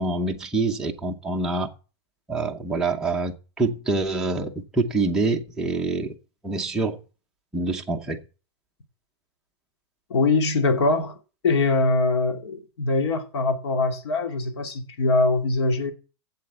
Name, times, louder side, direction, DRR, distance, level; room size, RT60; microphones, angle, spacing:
voice 1, 0.0-1.7 2.3-6.1 6.4-7.0 7.5-8.2, right 3 dB, 5° right, 0.8 m, -26 dB
voice 2, 10.1-11.2 11.4-15.9, left 3 dB, 85° left, 2.6 m, -22 dB
7.8 x 7.7 x 8.6 m
supercardioid pair, 180°, 14 cm